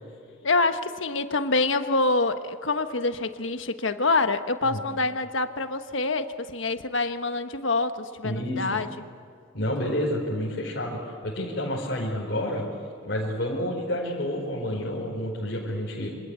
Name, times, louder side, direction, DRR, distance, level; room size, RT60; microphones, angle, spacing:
voice 1, 0.4-8.9, left 3 dB, 75° left, 8 dB, 1.4 m, -26 dB
voice 2, 8.2-8.8 9.5-12.6 13.0-16.1, left 1 dB, 55° left, -4 dB, 4.9 m, -29 dB
27.0 x 26.0 x 8.3 m, 2.4 s
head